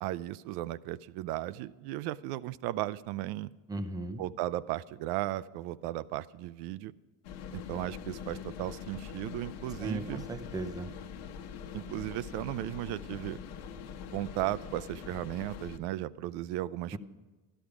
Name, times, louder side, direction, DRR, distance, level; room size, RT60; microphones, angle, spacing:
voice 1, 0.0-3.5 4.2-6.9 7.5-10.2 11.7-13.4 14.1-17.0, right 15 dB, 70° right, 19 dB, 0.6 m, -36 dB
voice 2, 3.7-4.2 9.8-10.9 16.9-17.0, right 2 dB, 10° right, 8 dB, 0.5 m, -36 dB
sound 1, 7.2-15.8, left 7 dB, 60° left, 1.1 m, -43 dB
12.5 x 12.5 x 4.9 m, 1.2 s
cardioid pair, 175°, 41 cm